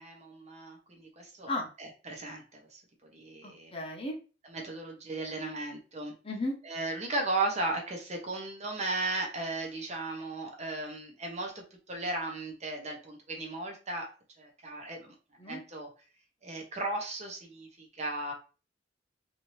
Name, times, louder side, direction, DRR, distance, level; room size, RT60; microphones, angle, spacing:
voice 1, 0.0-1.5 1.8-2.8 3.1-3.7 4.4-6.1 6.6-14.1 14.4-15.1 15.5-15.9 16.4-18.3, right 2 dB, 40° right, 1 dB, 0.9 m, -36 dB
voice 2, 3.4-4.2 6.2-6.6 15.4-15.6, left 2 dB, 30° left, 1 dB, 0.8 m, -34 dB
2.8 x 2.7 x 3.1 m, 0.34 s
head